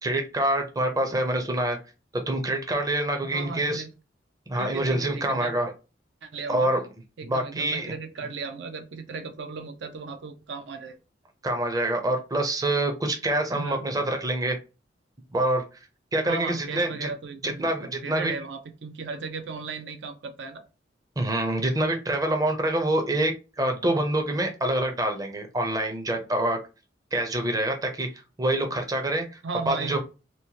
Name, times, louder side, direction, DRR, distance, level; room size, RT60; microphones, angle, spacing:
voice 1, 0.0-1.8 2.3-3.8 4.5-5.7 6.5-6.8 7.3-7.9 11.4-14.6 15.3-15.6 16.1-17.1 17.4-18.3 21.2-23.3 23.6-26.6 27.1-28.1 28.4-29.3 29.7-30.0, right 1 dB, 20° right, 3 dB, 0.5 m, -26 dB
voice 2, 3.2-3.9 4.5-5.5 6.2-6.7 7.2-11.0 13.5-13.8 16.2-20.6 29.4-30.0, right 4 dB, 70° right, 7 dB, 0.5 m, -36 dB
2.9 x 2.1 x 2.7 m, 0.30 s
head